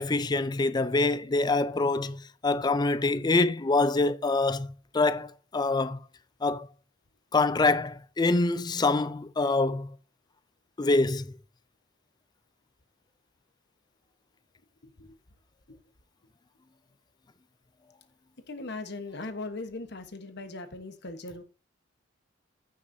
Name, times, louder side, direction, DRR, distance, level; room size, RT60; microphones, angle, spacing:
voice 1, 0.0-6.0 6.4-6.7 7.3-9.9 10.8-11.3, left 3 dB, 20° left, 0.4 m, -25 dB
voice 2, 14.8-15.1 18.5-21.4, left 2 dB, 55° left, 1.1 m, -39 dB
14.5 x 6.4 x 2.7 m
head